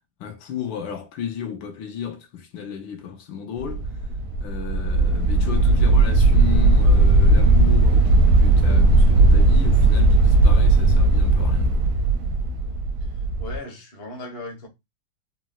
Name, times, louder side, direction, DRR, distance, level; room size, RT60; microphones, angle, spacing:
voice 1, 0.2-3.8 4.4-11.9, left 8 dB, 80° left, 1.4 m, -33 dB
sound 1, 3.6-13.6, right 2 dB, 75° right, 0.9 m, -17 dB
voice 2, 13.0-14.7, left 2 dB, 40° left, 0.8 m, -38 dB
3.7 x 2.0 x 2.2 m
omnidirectional pair, 2.1 m